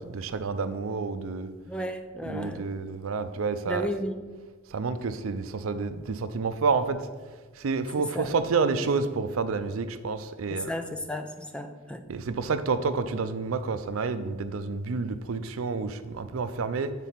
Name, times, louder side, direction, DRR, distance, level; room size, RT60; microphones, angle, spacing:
voice 1, 0.0-1.5 2.2-3.9 4.7-7.1 7.6-10.8 12.1-16.9, right 4 dB, 90° right, 11 dB, 0.5 m, -29 dB
voice 2, 1.7-2.7 3.7-4.2 8.2-8.3 10.5-12.0, equal, 5° left, 7 dB, 0.4 m, -33 dB
8.3 x 4.1 x 5.8 m, 1.4 s
head